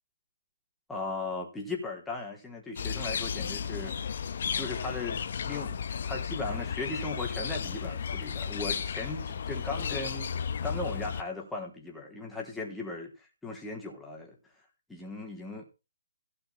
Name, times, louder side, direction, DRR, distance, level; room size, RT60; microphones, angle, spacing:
voice 1, 0.9-3.9 4.5-14.4 14.9-15.6, left 3 dB, 5° left, 3.5 m, -37 dB
sound 1, 2.8-11.2, left 7 dB, 50° left, 1.1 m, -34 dB
17.0 x 5.9 x 5.9 m
figure-of-eight pair, 135°, 0 cm